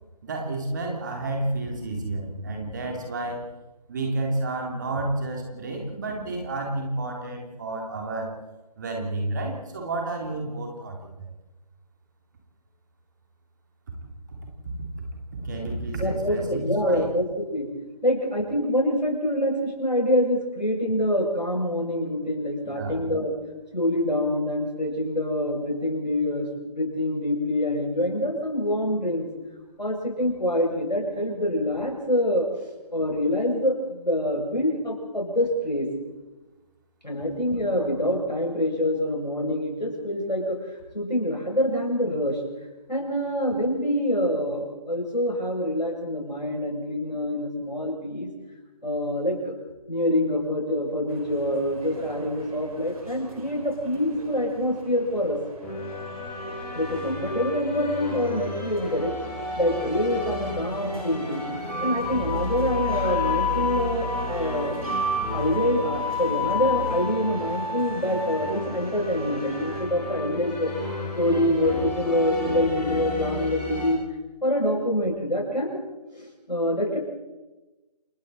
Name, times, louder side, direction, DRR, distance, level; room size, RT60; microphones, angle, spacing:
voice 1, 0.2-3.5 3.9-8.3 8.8-11.3 14.3-14.4 15.0-15.1 15.4-17.1 22.6-22.9, right 2 dB, 25° right, 1 dB, 3.6 m, -30 dB
voice 2, 16.0-17.7 18.0-23.3 23.7-29.3 29.8-32.5 32.9-35.9 37.0-40.6 40.9-42.4 42.9-48.3 48.8-49.5 49.9-55.4 56.7-59.1 59.5-61.4 61.8-64.8 65.3-70.7 71.2-74.0 74.4-75.8 76.1-77.0, left 1 dB, 85° left, -1 dB, 7.9 m, -26 dB
sound 1, 51.1-69.9, right 1 dB, 55° right, 6.1 m, -43 dB
sound 2, 55.6-73.9, left 2 dB, 5° left, 3.6 m, -31 dB
28.5 x 21.5 x 4.4 m, 1.1 s
figure-of-eight pair, 155°, 21 cm